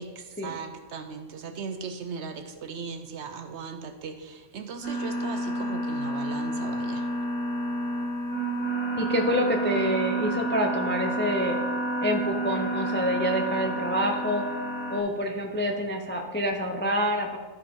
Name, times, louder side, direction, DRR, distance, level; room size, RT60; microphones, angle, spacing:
voice 1, 0.0-7.1, right 5 dB, 65° right, 7 dB, 0.8 m, -38 dB
sound 1, 4.8-15.0, right 1 dB, 40° left, 2.2 m, -30 dB
voice 2, 9.0-11.6 12.0-14.4 14.9-17.4, equal, 15° left, 2 dB, 0.4 m, -27 dB
13.5 x 4.7 x 3.6 m, 1.3 s
omnidirectional pair, 1.4 m